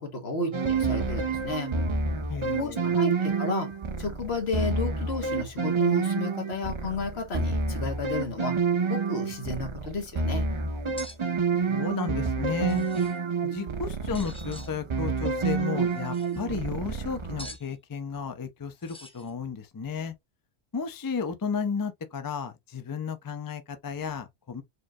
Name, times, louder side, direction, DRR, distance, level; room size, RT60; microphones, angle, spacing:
voice 1, 0.0-1.8 2.6-3.7 4.0-8.6 8.9-10.5, left 2 dB, 65° left, 1.5 m, -32 dB
sound 1, 0.5-17.6, right 4 dB, 45° right, 0.4 m, -28 dB
voice 2, 2.3-2.9 11.7-12.9 13.4-20.1 20.7-24.6, left 5 dB, 35° left, 0.3 m, -33 dB
sound 2, 11.0-11.2 12.5-13.2 14.1-14.7 15.8-16.4 17.4-17.7 18.8-19.3, equal, 5° left, 0.8 m, -45 dB
4.4 x 3.0 x 2.3 m
omnidirectional pair, 1.1 m